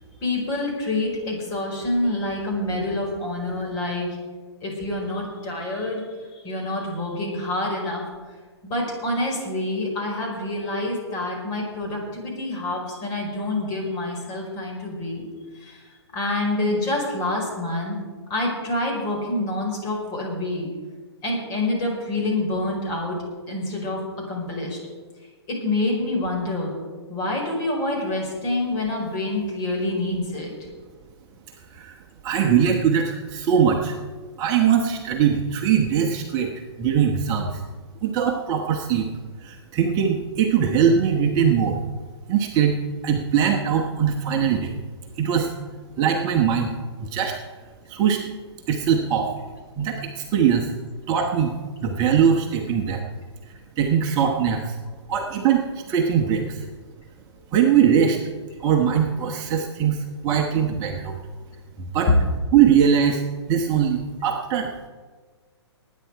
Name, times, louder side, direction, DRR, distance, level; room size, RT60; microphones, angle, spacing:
voice 1, 0.2-4.1 4.6-6.0 6.3-8.0 8.6-15.2 15.5-15.8 16.1-18.0 18.3-20.7 21.2-23.2 23.5-24.8 25.5-26.7 27.1-30.5, left 2 dB, 25° left, -1 dB, 4.9 m, -27 dB
voice 2, 32.2-34.0 34.4-36.5 36.8-37.6 38.0-39.1 39.4-41.8 42.3-42.8 43.0-44.7 45.1-45.5 46.0-46.7 47.0-47.4 47.9-48.2 48.7-49.3 49.8-50.7 51.1-53.0 53.8-54.8 55.1-56.6 57.5-58.2 58.6-61.2 61.9-62.1 62.5-64.9, right 8 dB, 25° right, 1 dB, 1.2 m, -21 dB
20.0 x 9.5 x 4.8 m, 1.4 s
figure-of-eight pair, 125°, 15 cm